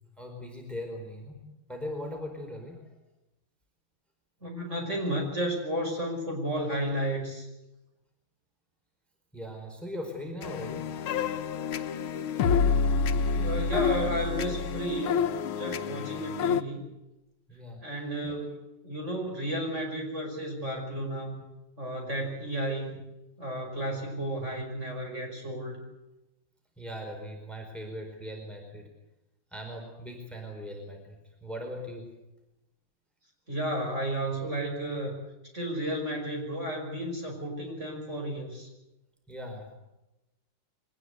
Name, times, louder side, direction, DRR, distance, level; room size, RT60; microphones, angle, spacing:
voice 1, 0.2-1.4 1.7-2.9 9.3-10.9 17.5-17.9 18.2-18.3 26.8-28.9 29.5-32.1 39.3-39.8, equal, ahead, 3 dB, 4.7 m, -39 dB
voice 2, 4.4-7.5 13.3-16.8 17.8-21.4 21.8-23.0 23.4-25.8 33.5-35.1 35.5-38.7, right 1 dB, 35° right, 1 dB, 6.1 m, -33 dB
sound 1, 10.4-16.6, left 5 dB, 85° left, 1.9 m, -28 dB
23.5 x 20.0 x 8.2 m, 0.96 s
omnidirectional pair, 2.3 m